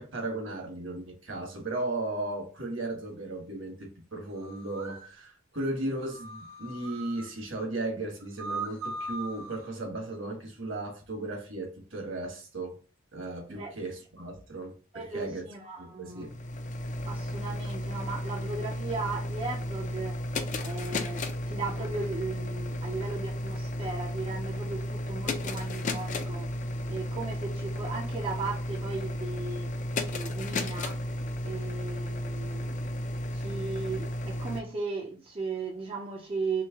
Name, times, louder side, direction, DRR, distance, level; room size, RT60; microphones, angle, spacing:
voice 1, 0.0-12.8 13.1-15.4 15.8-16.3, right 2 dB, 65° right, 1.2 m, -36 dB
sound 1, 4.4-5.1 6.1-7.3 8.2-9.7, right 3 dB, 85° right, 0.9 m, -39 dB
voice 2, 14.9-16.3 17.0-20.2 20.6-26.5 26.9-29.7 30.1-31.0 31.4-32.9 33.3-36.6, right 4 dB, 25° right, 0.4 m, -36 dB
sound 2, 16.1-34.6, left 1 dB, 35° left, 0.4 m, -33 dB
3.1 x 3.0 x 3.4 m
head